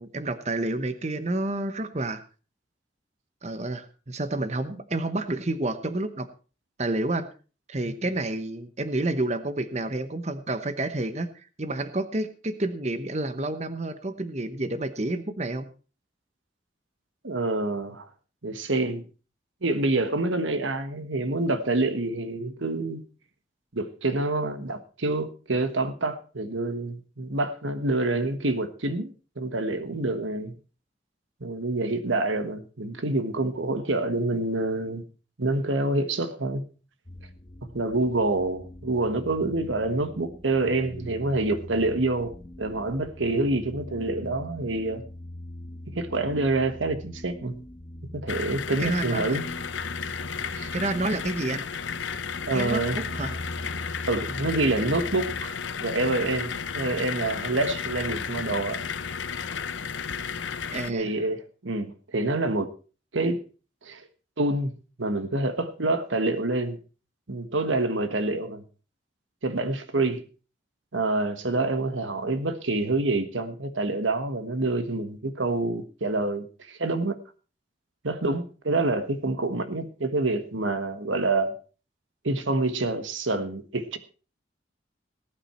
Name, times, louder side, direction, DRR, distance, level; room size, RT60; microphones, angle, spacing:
voice 1, 0.0-2.2 3.4-6.3 6.8-7.3 7.7-11.3 11.6-15.7 48.8-49.4 50.7-51.6 52.5-53.4 60.7-61.1, right 2 dB, 35° right, 0.9 m, -29 dB
voice 2, 17.2-18.1 18.4-19.0 19.6-23.0 23.7-30.5 31.4-35.0 35.4-36.6 37.6-45.0 45.9-47.6 48.1-49.5 50.5-50.7 52.5-53.0 54.1-58.8 60.9-62.7 63.1-63.4 63.8-64.1 64.4-64.7 65.0-66.8 67.3-68.6 69.4-70.2 70.9-77.1 78.0-81.5 82.2-84.0, right 2 dB, 80° right, 1.3 m, -27 dB
sound 1, 37.1-55.4, left 1 dB, 25° left, 1.0 m, -42 dB
sound 2, 48.3-60.9, left 6 dB, 80° left, 0.8 m, -33 dB
18.5 x 9.0 x 4.4 m
head